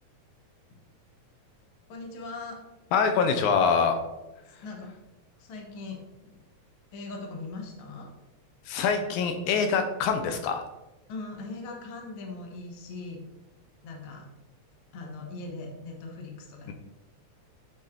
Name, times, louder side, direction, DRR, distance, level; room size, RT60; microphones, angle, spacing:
voice 1, 1.9-2.6 4.6-4.9 5.4-6.3 6.9-8.1 11.1-13.2 13.8-14.3 14.9-16.7, left 3 dB, 55° left, 1 dB, 1.7 m, -40 dB
voice 2, 2.9-4.0 8.7-10.6, left 5 dB, 80° left, 6 dB, 2.0 m, -24 dB
8.9 x 4.2 x 3.7 m, 1.0 s
omnidirectional pair, 3.5 m